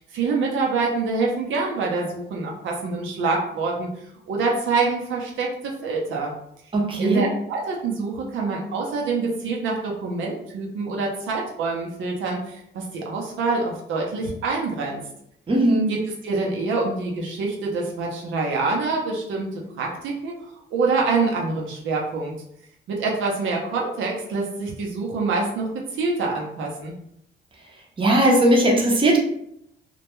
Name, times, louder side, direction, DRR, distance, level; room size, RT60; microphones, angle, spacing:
voice 1, 0.0-3.9 4.3-6.3 7.0-15.0 15.9-16.0 16.2-22.3 22.9-27.0, right 3 dB, 75° right, -1 dB, 0.6 m, -26 dB
voice 2, 6.7-7.2 15.5-15.9 28.0-29.2, right 1 dB, 25° right, -1 dB, 0.7 m, -18 dB
2.2 x 2.1 x 2.9 m, 0.75 s
cardioid pair, 90°, 20 cm